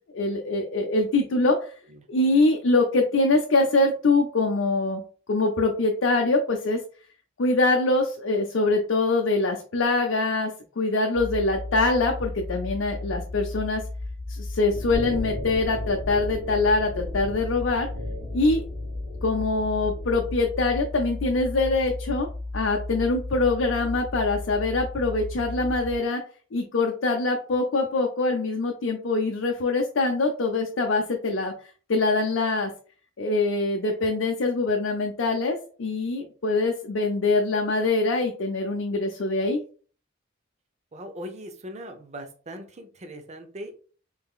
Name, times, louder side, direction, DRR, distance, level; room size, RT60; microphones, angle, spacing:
voice 1, 0.1-1.6 2.1-5.0 5.3-6.8 7.4-10.5 10.8-13.8 14.3-17.9 18.3-18.6 19.2-26.2 26.5-31.5 31.9-32.7 33.2-39.6, left 3 dB, 70° left, 2 dB, 0.5 m, -24 dB
voice 2, 1.9-2.3 40.9-43.8, equal, 35° right, 6 dB, 0.6 m, -40 dB
sound 1, 11.2-26.0, left 2 dB, 20° left, 0.4 m, -35 dB
sound 2, 14.7-20.3, left 1 dB, 75° right, 1.9 m, -38 dB
3.7 x 3.4 x 2.3 m, 0.40 s
head